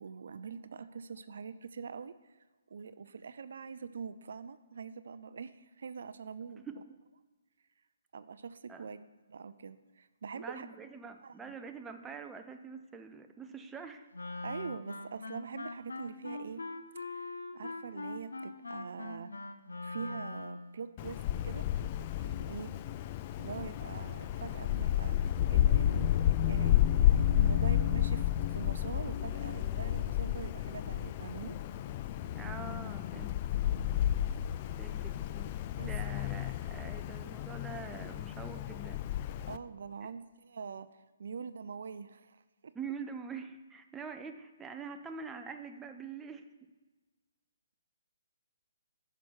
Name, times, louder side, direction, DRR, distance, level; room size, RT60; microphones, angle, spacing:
voice 1, 0.0-2.4 2.7-6.6 8.1-9.0 9.3-10.7 11.2-11.5 14.4-16.6 17.1-19.3 19.8-21.6 22.2-22.7 23.4-26.8 27.2-31.6 34.6-34.7 35.8-35.9 39.5-42.7, right 6 dB, 65° right, 13 dB, 0.4 m, -44 dB
voice 2, 6.6-7.0 8.7-8.9 10.3-14.1 32.3-33.4 34.8-35.5 35.8-39.0 42.7-46.4, right 5 dB, 10° right, 6 dB, 0.5 m, -45 dB
Wind instrument woodwind instrument, 14.1-20.8, left 3 dB, 85° left, 0.7 m, -42 dB
Wind, 21.0-39.6, left 11 dB, 35° left, 0.3 m, -31 dB
10.0 x 6.0 x 4.6 m, 1.2 s
hypercardioid pair, 140°, 0 cm